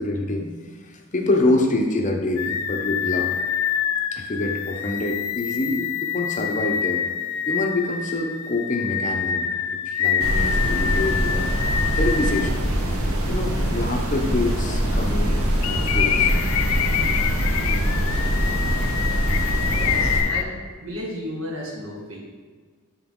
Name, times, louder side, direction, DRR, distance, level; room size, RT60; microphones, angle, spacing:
voice 1, 0.0-3.3 4.1-7.1 7.5-9.5 9.9-11.5 12.0-12.6 13.3-16.3, left 2 dB, 35° left, 3 dB, 0.7 m, -26 dB
sound 1, 2.4-12.5 13.0-13.1 15.6-20.4, left 8 dB, 85° left, 0.4 m, -26 dB
sound 2, 10.2-20.2, equal, 90° right, 1.2 m, -23 dB
voice 2, 19.6-22.2, equal, 70° right, -3 dB, 1.8 m, -34 dB
10.0 x 4.0 x 3.7 m, 1.5 s
head